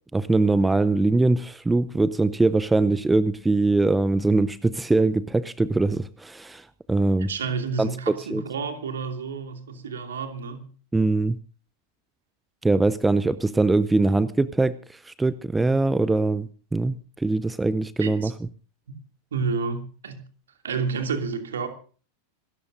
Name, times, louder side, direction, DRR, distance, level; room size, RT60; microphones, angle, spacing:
voice 1, 0.1-7.3 7.8-8.4 10.9-11.4 12.6-18.3, right 2 dB, 10° right, 0.6 m, -22 dB
voice 2, 7.3-10.6 18.0-18.3 19.3-20.2 20.6-21.7, right 5 dB, 65° right, 2.7 m, -30 dB
27.0 x 13.5 x 2.7 m
figure-of-eight pair, 90°, 0 cm